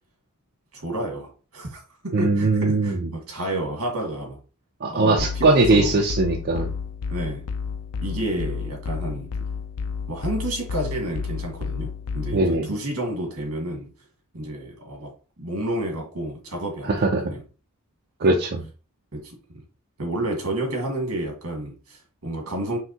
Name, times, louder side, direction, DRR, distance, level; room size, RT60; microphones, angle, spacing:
voice 1, 0.7-4.4 4.9-6.0 7.1-7.5 8.0-9.3 10.1-13.9 14.3-15.1 15.4-17.4 18.2-18.3 19.1-19.4 20.0-22.8, right 1 dB, 75° right, 1.7 m, -30 dB
voice 2, 2.1-3.1 4.8-6.7 12.3-12.7 16.8-17.3 18.2-18.6, right 2 dB, 50° right, 0.6 m, -20 dB
sound 1, 5.2-12.5, left 5 dB, 90° left, 0.5 m, -31 dB
5.7 x 2.7 x 2.9 m
head